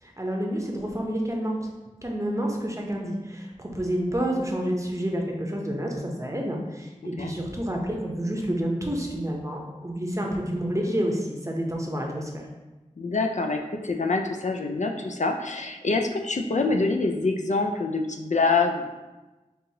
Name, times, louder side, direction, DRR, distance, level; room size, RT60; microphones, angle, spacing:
voice 1, 0.0-1.6 2.0-12.4, equal, 20° right, 0 dB, 0.7 m, -29 dB
voice 2, 13.0-18.9, left 3 dB, 60° left, 3 dB, 0.4 m, -25 dB
5.4 x 2.7 x 2.8 m, 1.1 s
wide cardioid pair, 45°, 14 cm